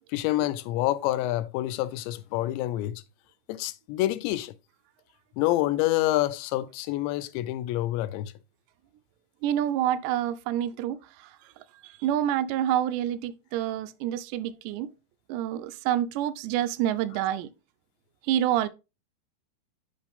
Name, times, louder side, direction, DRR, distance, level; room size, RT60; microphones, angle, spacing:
voice 1, 0.1-3.0 3.5-4.5 5.4-8.3, left 15 dB, 85° left, 2.8 m, -27 dB
voice 2, 9.4-11.3 11.8-14.9 15.3-17.5 18.3-18.7, right 11 dB, 85° right, 2.7 m, -27 dB
9.7 x 5.3 x 3.5 m
omnidirectional pair, 5.1 m